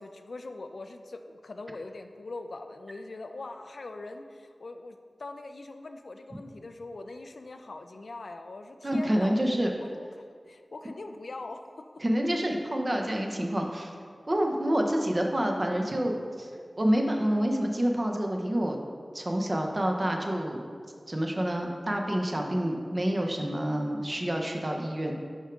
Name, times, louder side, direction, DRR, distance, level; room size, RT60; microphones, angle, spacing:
voice 1, 0.0-11.6, left 2 dB, 75° left, 6 dB, 0.4 m, -42 dB
voice 2, 8.8-9.7 12.0-13.9 14.3-16.5 16.8-18.8 19.1-20.6 21.1-25.1, equal, 35° right, 2 dB, 0.8 m, -28 dB
6.3 x 4.6 x 5.1 m, 2.2 s
wide cardioid pair, 80°, 0 cm